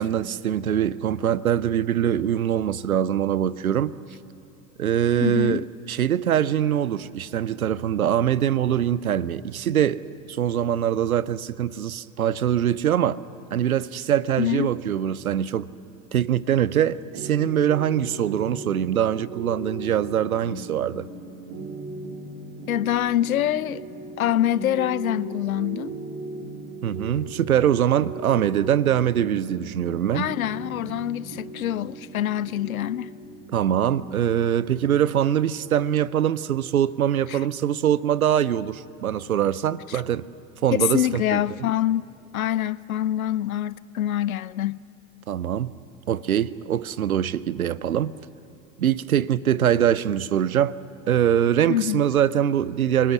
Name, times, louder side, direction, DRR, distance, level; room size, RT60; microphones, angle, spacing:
voice 1, 0.0-3.9 4.8-10.0 10.3-13.2 13.5-15.7 16.1-21.1 26.8-30.3 33.5-40.2 40.6-41.4 45.3-45.7 46.1-48.1 48.8-50.7 51.1-53.1, right 10 dB, 80° right, 0.7 m, -23 dB
voice 2, 5.2-5.7 14.4-14.7 22.7-23.8 24.2-25.9 30.1-33.1 37.3-37.4 40.8-42.1 42.3-44.8 51.7-52.0, left 12 dB, 75° left, 0.6 m, -25 dB
sound 1, 17.1-36.7, right 2 dB, 45° right, 2.7 m, -38 dB
26.5 x 19.5 x 9.6 m
figure-of-eight pair, 70°, 42 cm